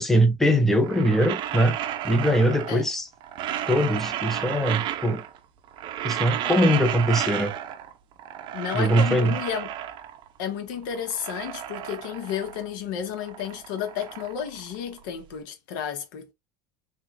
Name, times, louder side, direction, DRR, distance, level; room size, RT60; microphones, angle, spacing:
voice 1, 0.0-1.8 2.0-3.1 3.7-5.2 6.0-7.5 8.7-9.4, equal, 5° left, 0.7 m, -22 dB
sound 1, 0.7-2.9 3.2-5.4 5.7-7.9 8.2-10.3 10.7-12.7 13.0-15.2, right 11 dB, 50° right, 0.6 m, -32 dB
voice 2, 8.5-9.7 10.4-16.3, left 8 dB, 70° left, 1.0 m, -32 dB
3.4 x 2.9 x 2.5 m
supercardioid pair, 105°, 11 cm